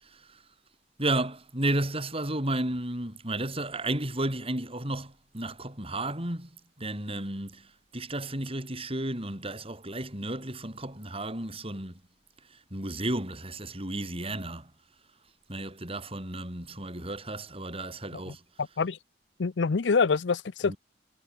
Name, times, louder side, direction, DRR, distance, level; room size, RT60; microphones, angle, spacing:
voice 1, 0.0-0.4 1.0-12.0 12.5-14.7 15.5-18.4 20.6-20.8, right 1 dB, 30° right, 8.0 m, -33 dB
voice 2, 18.3-19.0 19.4-20.7, left 4 dB, 75° left, 0.6 m, -26 dB
head